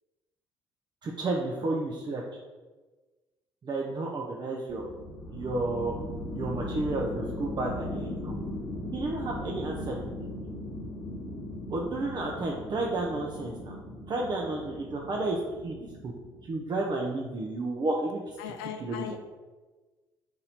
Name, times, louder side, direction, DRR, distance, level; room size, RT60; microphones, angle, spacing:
voice 1, 1.0-2.2 3.6-4.9 5.3-5.9 6.3-8.3 8.9-9.9 10.2-10.3 11.7-13.8 14.1-15.4 15.6-16.1 16.5-18.2 18.8-19.0, right 2 dB, 35° right, -1 dB, 0.7 m, -31 dB
sound 1, 4.7-16.8, left 1 dB, 25° left, 1.2 m, -38 dB
voice 2, 18.4-19.2, left 9 dB, 75° left, 6 dB, 0.5 m, -38 dB
4.1 x 2.7 x 4.1 m, 1.3 s
hypercardioid pair, 50°, 12 cm